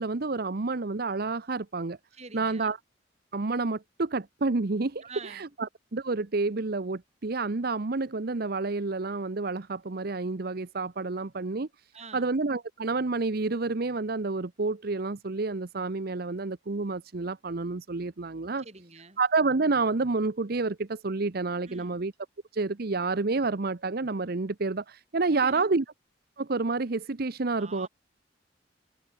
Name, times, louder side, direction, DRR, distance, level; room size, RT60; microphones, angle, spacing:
voice 1, 0.0-2.0 2.3-2.8 3.3-18.6 19.2-22.1 22.5-25.8 26.4-27.9, right 3 dB, 55° right, 0.8 m, -29 dB
voice 2, 2.1-2.8 5.0-5.5 11.9-12.4 18.6-19.2 21.7-22.0 25.3-25.7 27.5-27.9, right 4 dB, 35° right, 6.6 m, -46 dB
head